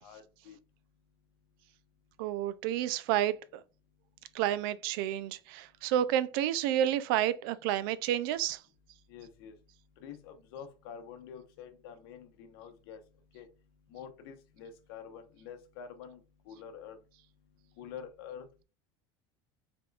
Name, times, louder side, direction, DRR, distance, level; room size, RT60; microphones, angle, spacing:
voice 1, 0.0-0.6 9.1-9.5 10.0-13.0 13.3-13.5 13.9-16.2 16.5-17.0 17.8-18.5, left 8 dB, 70° left, 1.0 m, -47 dB
voice 2, 2.2-3.6 4.3-8.6, right 11 dB, 65° right, 0.5 m, -30 dB
4.8 x 3.6 x 2.4 m
cardioid pair, 175°, 13 cm